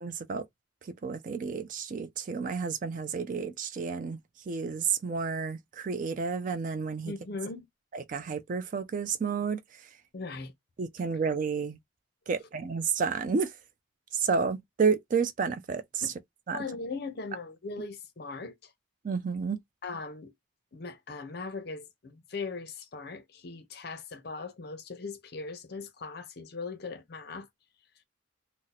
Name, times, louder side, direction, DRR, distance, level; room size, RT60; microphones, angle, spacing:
voice 1, 0.0-0.4 0.8-4.2 4.5-7.1 7.9-9.6 10.8-11.8 12.3-13.5 14.1-16.1 16.5-16.6 19.0-19.6, right 5 dB, 40° right, 0.3 m, -30 dB
voice 2, 7.0-7.6 10.1-10.5 16.0-16.1 16.5-18.7 19.8-20.3 20.7-27.5, left 4 dB, 50° left, 0.6 m, -39 dB
2.6 x 2.0 x 3.9 m
head